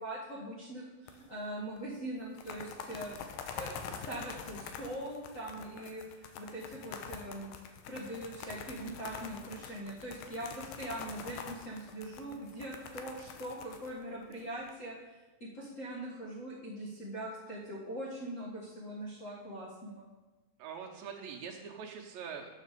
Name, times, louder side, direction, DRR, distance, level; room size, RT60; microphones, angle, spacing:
voice 1, 0.0-3.1 3.5-7.5 7.9-20.0, right 1 dB, 50° left, -7 dB, 0.9 m, -42 dB
sound 1, 1.1-1.5 1.8-1.9 2.2-14.7, left 6 dB, 85° left, 2.5 m, -45 dB
voice 2, 20.6-22.5, right 6 dB, 85° right, -1 dB, 2.6 m, -43 dB
7.4 x 7.3 x 6.7 m, 1.2 s
omnidirectional pair, 4.0 m